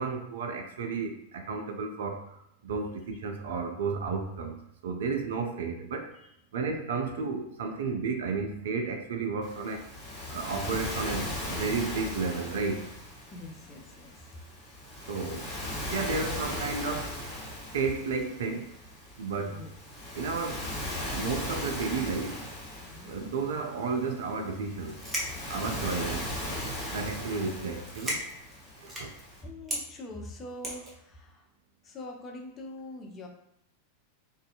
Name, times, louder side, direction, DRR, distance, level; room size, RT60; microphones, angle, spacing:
voice 1, 0.0-2.2 2.6-4.6 4.8-6.1 6.5-9.9 10.3-12.9 15.1-15.5 15.9-17.1 17.7-18.7 19.2-19.6 20.2-20.7 21.1-22.4 23.0-25.0 25.5-26.3 26.9-28.2 28.8-29.1, right 4 dB, 60° right, 4 dB, 0.3 m, -32 dB
Waves surf, 9.4-29.4, left 1 dB, 10° left, 1.2 m, -38 dB
voice 2, 13.3-14.1 19.3-19.7 22.8-23.1 29.4-31.5 31.8-33.3, left 1 dB, 25° left, 1 dB, 0.4 m, -43 dB
sound 1, 24.9-26.1 26.7-27.1 27.4-27.5 27.8-29.2 29.7-29.8 30.6-31.0, equal, 10° right, 0.7 m, -35 dB
2.6 x 2.1 x 2.4 m, 0.77 s
figure-of-eight pair, 90°, 0 cm